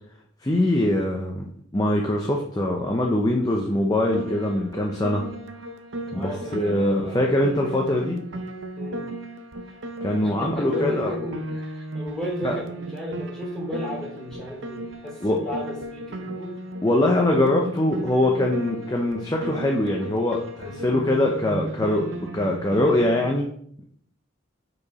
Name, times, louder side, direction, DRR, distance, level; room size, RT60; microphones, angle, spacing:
voice 1, 0.4-5.2 6.1-8.2 10.0-11.1 12.4-12.6 15.2-15.4 16.8-23.5, left 1 dB, 20° left, 0 dB, 0.6 m, -23 dB
Piano, 4.1-23.3, right 1 dB, 70° right, 0.7 m, -35 dB
voice 2, 6.1-7.2 8.8-9.0 10.2-16.5 17.8-18.0 20.6-20.8, equal, 5° left, -4 dB, 2.7 m, -34 dB
5.3 x 4.7 x 4.1 m, 0.64 s
head